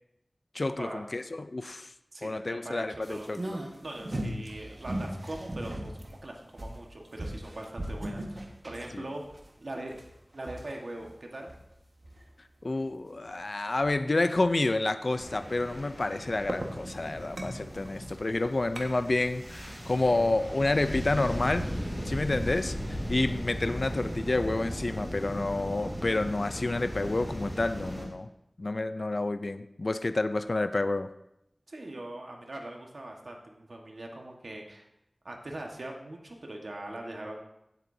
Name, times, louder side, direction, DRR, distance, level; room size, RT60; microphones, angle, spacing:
voice 1, 0.5-1.9 2.2-3.6 8.9-9.0 12.6-21.7 22.0-28.3 28.6-31.1, left 2 dB, 60° left, 10 dB, 0.5 m, -29 dB
voice 2, 2.1-3.3 3.8-9.9 10.3-11.5 31.7-34.9 35.2-37.4, right 1 dB, 80° right, 1 dB, 1.5 m, -41 dB
sound 1, 3.0-12.3 12.7-12.8 13.3-13.4 13.8-14.0 14.4-14.7 15.2-19.2 19.5-19.6, right 1 dB, 55° right, 1.5 m, -39 dB
sound 2, 15.2-28.1, equal, 10° right, 3.8 m, -37 dB
16.5 x 8.1 x 2.7 m, 0.81 s
wide cardioid pair, 55°, 0 cm